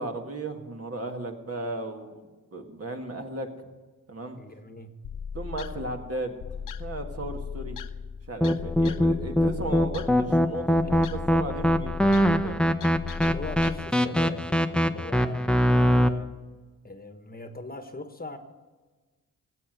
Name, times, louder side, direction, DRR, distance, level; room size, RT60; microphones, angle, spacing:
voice 1, 0.0-3.7 4.1-4.4 5.3-7.8 8.3-12.6, right 2 dB, 45° right, 3 dB, 1.9 m, -36 dB
voice 2, 4.3-4.9 10.8-10.9 13.2-16.3 16.8-18.4, left 2 dB, 25° left, 8 dB, 1.3 m, -41 dB
sound 1, 5.0-13.8, left 6 dB, 70° left, 0.7 m, -38 dB
sound 2, 8.4-16.1, equal, 5° left, 0.8 m, -23 dB
15.0 x 7.8 x 8.1 m, 1.3 s
cardioid pair, 55°, 33 cm